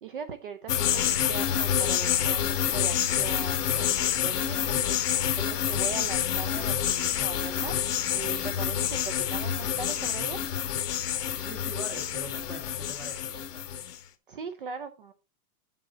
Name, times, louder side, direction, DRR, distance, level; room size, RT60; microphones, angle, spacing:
voice 1, 0.0-2.4 2.7-10.4 14.3-15.1, right 6 dB, 35° right, 10 dB, 0.6 m, -40 dB
sound 1, 0.7-14.0, left 9 dB, 80° left, 1.3 m, -28 dB
voice 2, 11.4-13.6, equal, ahead, 3 dB, 0.7 m, -42 dB
7.6 x 7.4 x 4.0 m, 0.28 s
hypercardioid pair, 170°, 46 cm